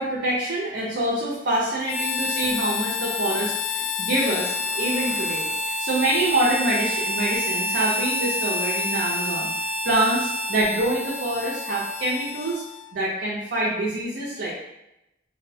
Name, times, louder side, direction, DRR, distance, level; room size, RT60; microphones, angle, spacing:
voice 1, 0.0-12.6 12.9-14.5, right 1 dB, 70° right, -7 dB, 0.6 m, -26 dB
Harmonica, 1.8-12.9, left 2 dB, 35° left, 0.3 m, -28 dB
2.6 x 2.1 x 2.6 m, 0.88 s
head